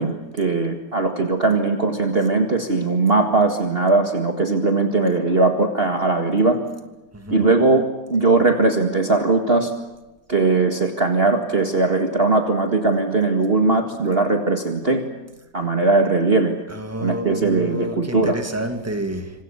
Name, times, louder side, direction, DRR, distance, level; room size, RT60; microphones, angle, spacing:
voice 1, 0.0-6.6 7.3-9.7 10.3-15.0 15.5-16.6 17.0-18.4, right 3 dB, 35° right, 5 dB, 2.0 m, -19 dB
voice 2, 16.7-19.3, right 1 dB, 10° right, 6 dB, 2.5 m, -29 dB
26.5 x 26.0 x 7.1 m, 1.1 s
omnidirectional pair, 1.8 m